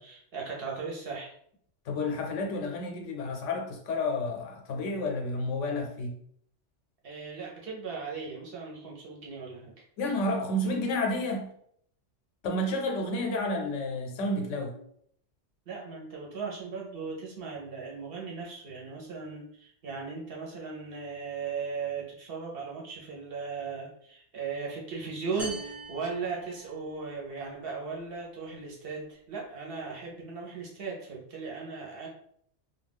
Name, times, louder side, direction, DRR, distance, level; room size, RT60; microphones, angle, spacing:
voice 1, 0.0-1.3 7.0-9.7 15.7-32.1, right 5 dB, 55° right, -2 dB, 0.9 m, -37 dB
voice 2, 1.9-6.2 10.0-11.5 12.4-14.7, left 1 dB, 80° left, 2 dB, 1.0 m, -30 dB
sound 1, 25.4-27.1, right 2 dB, 20° right, 1.1 m, -42 dB
2.3 x 2.3 x 3.4 m, 0.66 s
omnidirectional pair, 1.3 m